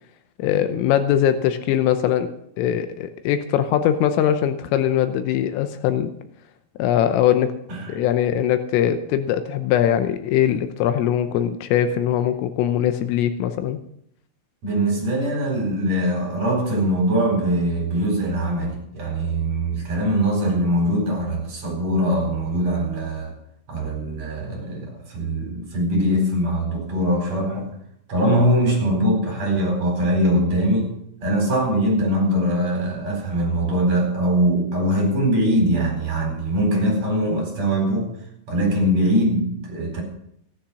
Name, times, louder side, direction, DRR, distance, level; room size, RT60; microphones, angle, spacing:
voice 1, 0.4-2.3 2.6-6.1 6.8-7.5 7.9-13.8, left 10 dB, 80° left, 9 dB, 3.4 m, -21 dB
voice 2, 14.6-23.3 23.7-27.7 28.1-30.9 31.2-38.1 38.5-40.0, right 1 dB, 35° right, 0 dB, 5.0 m, -22 dB
16.0 x 10.0 x 6.3 m, 0.72 s
omnidirectional pair, 6.0 m